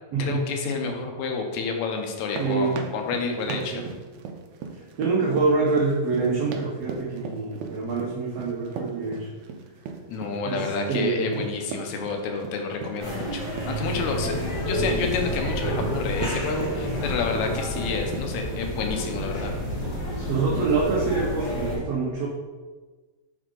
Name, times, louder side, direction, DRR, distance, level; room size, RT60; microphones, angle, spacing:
voice 1, 0.2-3.8 10.1-19.5, left 4 dB, 75° left, 3 dB, 1.8 m, -29 dB
sound 1, 2.0-18.5, right 5 dB, 90° right, 1.6 m, -38 dB
voice 2, 2.4-2.8 3.5-3.8 4.7-9.3 10.4-11.4 20.3-22.3, right 4 dB, 75° right, -4 dB, 1.5 m, -26 dB
sound 2, 13.0-21.8, equal, 15° left, 0.9 m, -30 dB
6.2 x 4.6 x 3.8 m, 1.3 s
omnidirectional pair, 4.0 m